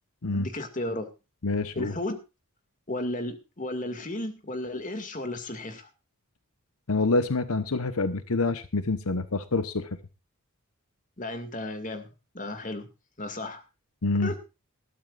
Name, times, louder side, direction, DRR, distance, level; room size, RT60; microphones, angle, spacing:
voice 1, 0.3-1.1 1.7-2.2 2.9-5.9 11.2-12.1 12.3-12.9 13.2-13.6 14.2-14.4, left 1 dB, 35° left, 7 dB, 2.2 m, -34 dB
voice 2, 1.4-1.9 6.9-9.9 14.0-14.3, left 3 dB, 80° left, 11 dB, 1.1 m, -26 dB
20.0 x 12.5 x 2.5 m, 0.28 s
head